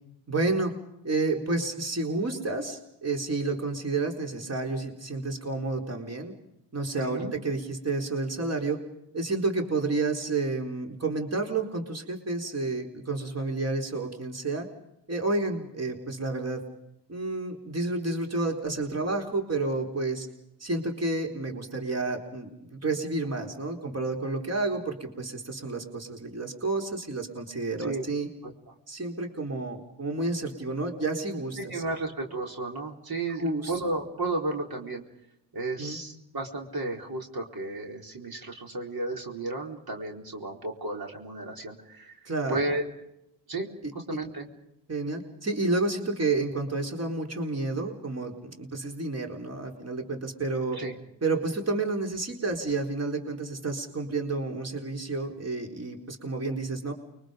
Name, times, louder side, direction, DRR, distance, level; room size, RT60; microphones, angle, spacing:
voice 1, 0.3-0.7 1.0-6.3 6.7-8.8 9.1-14.7 15.1-16.6 17.1-20.3 20.6-28.3 28.9-31.8 33.4-33.7 35.8-36.0 42.3-42.6 43.8-43.9 44.9-50.8 51.2-56.9, right 3 dB, 35° right, 2 dB, 4.4 m, -30 dB
voice 2, 6.9-7.3 27.8-28.0 28.4-28.7 31.6-35.0 35.5-42.8 43.5-43.7 43.9-44.5 50.7-50.9, right 2 dB, 55° right, 1 dB, 4.4 m, -33 dB
29.5 x 23.5 x 5.3 m, 0.81 s
supercardioid pair, 60°, 44 cm